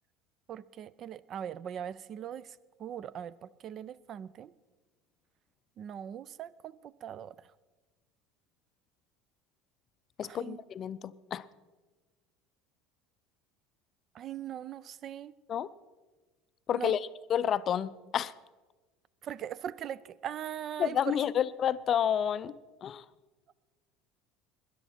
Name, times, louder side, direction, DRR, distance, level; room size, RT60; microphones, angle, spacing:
voice 1, 0.5-4.5 5.8-7.3 10.2-10.6 14.1-15.3 16.7-17.0 19.2-21.2, right 9 dB, 40° right, 21 dB, 0.3 m, -40 dB
voice 2, 10.2-11.4 15.5-15.7 16.7-17.0 17.3-18.3 20.8-22.6 22.8-23.0, left 9 dB, 35° left, 16 dB, 0.4 m, -30 dB
20.0 x 10.5 x 4.3 m, 1.3 s
figure-of-eight pair, 70°, 0 cm